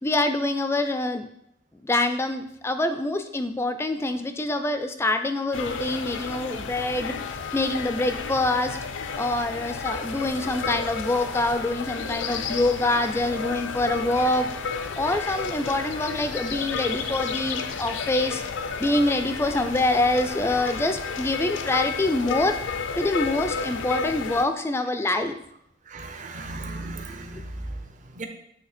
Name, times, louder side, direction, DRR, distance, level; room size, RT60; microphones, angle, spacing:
voice 1, 0.0-1.3 1.8-7.1 7.5-8.8 9.2-14.5 15.0-18.4 18.8-22.6 23.0-25.4, left 2 dB, 15° left, 8 dB, 0.3 m, -25 dB
sound 1, 5.5-24.5, left 5 dB, 75° left, 0.5 m, -32 dB
voice 2, 25.9-28.3, right 2 dB, 40° right, 5 dB, 0.7 m, -36 dB
8.6 x 2.9 x 4.2 m, 0.74 s
head